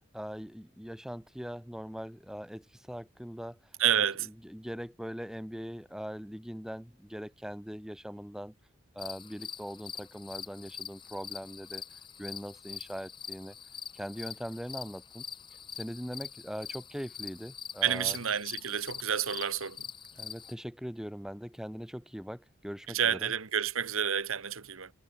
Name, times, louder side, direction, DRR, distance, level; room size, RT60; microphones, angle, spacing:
voice 1, 0.0-3.6 4.0-8.5 8.9-11.8 12.2-13.5 13.9-15.2 15.7-18.2 20.2-23.3, equal, ahead, 2.9 m, -41 dB
voice 2, 3.8-4.3 17.8-19.9 22.9-24.9, right 8 dB, 75° right, 1.3 m, -29 dB
sound 1, 9.0-20.5, left 7 dB, 20° left, 1.0 m, -44 dB
head